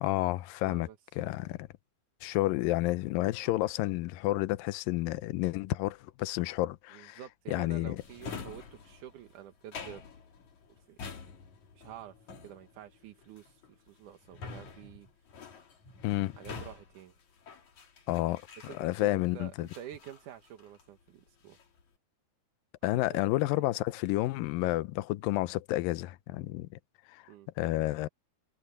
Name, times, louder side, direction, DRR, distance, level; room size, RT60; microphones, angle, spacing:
voice 1, 0.0-0.9 1.2-1.6 2.2-7.2 7.5-8.0 16.0-16.3 18.1-19.7 22.8-26.7 27.1-27.2 27.6-28.1, left 17 dB, 80° left, 2.2 m, -30 dB
voice 2, 0.6-1.0 3.4-3.6 6.9-10.0 10.7-11.0 11.7-12.2 12.4-15.1 15.4-15.6 16.4-17.1 18.6-21.6 22.8-23.7 27.3-27.5, right 11 dB, 65° right, 2.3 m, -49 dB
Drawer open or close, 8.0-19.2 19.7-21.0 21.3-21.8, left 5 dB, 50° left, 3.8 m, -47 dB
omnidirectional pair, 4.6 m